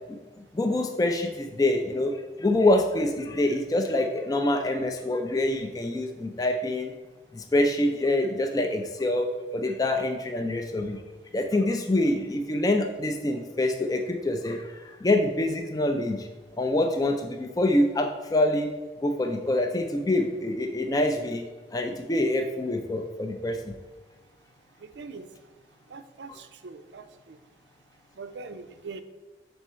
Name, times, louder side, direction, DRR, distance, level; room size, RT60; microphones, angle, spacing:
voice 1, 0.5-6.9 7.3-9.3 9.5-11.0 11.3-16.3 16.6-18.7 19.0-21.4 21.7-23.6, left 1 dB, 20° left, 4 dB, 0.4 m, -25 dB
voice 2, 25.0-25.3 25.9-27.4 28.2-29.0, right 4 dB, 75° right, 9 dB, 0.5 m, -42 dB
6.2 x 4.5 x 4.2 m, 1.2 s
head